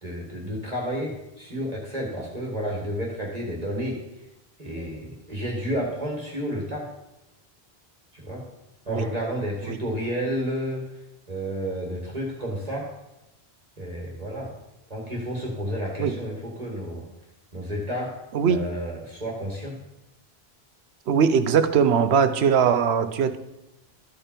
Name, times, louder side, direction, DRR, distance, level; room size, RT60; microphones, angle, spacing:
voice 1, 0.0-4.0 4.6-6.9 8.2-8.5 8.9-10.9 11.3-12.9 13.8-14.6 14.9-17.1 17.5-18.2 18.5-19.8, equal, 40° right, -2 dB, 1.9 m, -31 dB
voice 2, 21.1-23.4, right 7 dB, 90° right, 10 dB, 1.0 m, -20 dB
13.0 x 5.1 x 4.4 m, 0.95 s
omnidirectional pair, 1.0 m